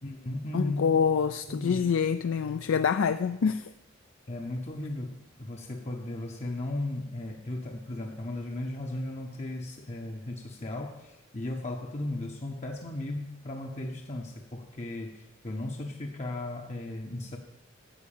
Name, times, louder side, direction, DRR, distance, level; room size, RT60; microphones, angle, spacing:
voice 1, 0.0-1.0 1.5-1.9 4.3-17.4, left 1 dB, 35° left, 2 dB, 0.7 m, -36 dB
voice 2, 0.5-3.7, left 6 dB, 75° left, 10 dB, 0.4 m, -26 dB
10.0 x 7.6 x 7.1 m, 1.0 s
head